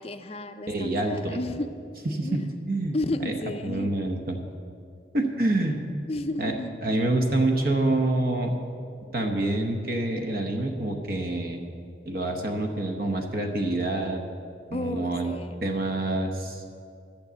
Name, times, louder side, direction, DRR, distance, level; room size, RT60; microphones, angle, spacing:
voice 1, 0.0-1.7 2.2-2.6 2.9-3.9 6.1-6.7 14.7-15.6, left 1 dB, 30° left, 9 dB, 0.5 m, -32 dB
voice 2, 0.7-1.4 2.0-3.4 3.6-4.4 5.1-5.8 6.4-6.6 6.8-8.6 9.1-11.6 12.0-14.2 14.7-15.3 15.6-16.6, right 2 dB, 50° right, 4 dB, 0.9 m, -27 dB
12.0 x 6.9 x 8.0 m, 2.4 s
head